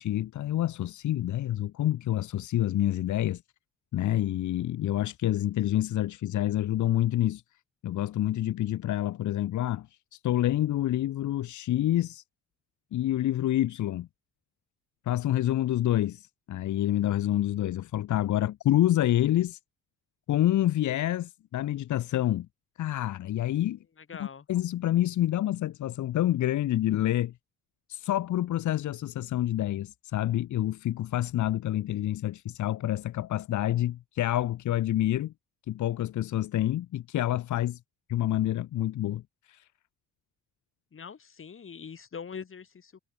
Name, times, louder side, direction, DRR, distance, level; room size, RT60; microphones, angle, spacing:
voice 1, 0.0-3.4 3.9-7.4 7.8-9.9 10.1-12.2 12.9-14.1 15.1-19.6 20.3-22.5 22.8-23.8 24.2-27.3 27.9-35.3 35.7-37.8 38.1-39.2 39.5-39.6, left 13 dB, 75° left, 1.8 m, -27 dB
voice 2, 24.0-24.5 40.9-43.0, left 6 dB, 45° left, 6.9 m, -43 dB
cardioid pair, 90°, 30 cm